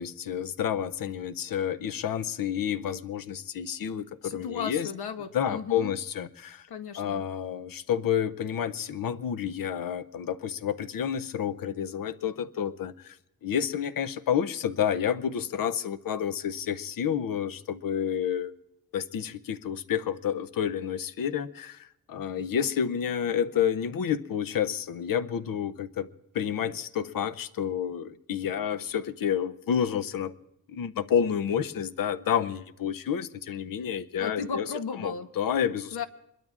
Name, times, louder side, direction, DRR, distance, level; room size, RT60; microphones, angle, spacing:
voice 1, 0.0-4.9 5.3-6.7 7.0-13.2 13.4-18.5 18.9-26.1 26.3-30.3 30.7-34.7 35.0-36.0, left 8 dB, 60° left, 0.6 m, -29 dB
voice 2, 4.2-5.9 6.7-7.2 34.2-35.3 35.9-36.0, left 6 dB, 80° left, 0.9 m, -35 dB
25.0 x 21.5 x 2.4 m
wide cardioid pair, 175°, 38 cm